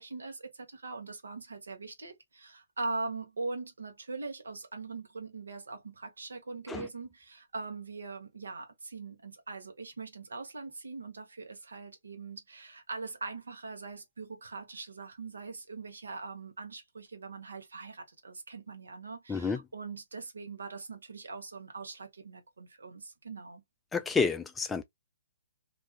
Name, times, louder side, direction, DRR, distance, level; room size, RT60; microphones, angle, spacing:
voice 1, 0.0-23.6, right 3 dB, 70° right, 1.0 m, -41 dB
voice 2, 19.3-19.6 23.9-24.8, left 5 dB, 10° left, 0.3 m, -29 dB
3.4 x 2.6 x 2.3 m
figure-of-eight pair, 125°, 0 cm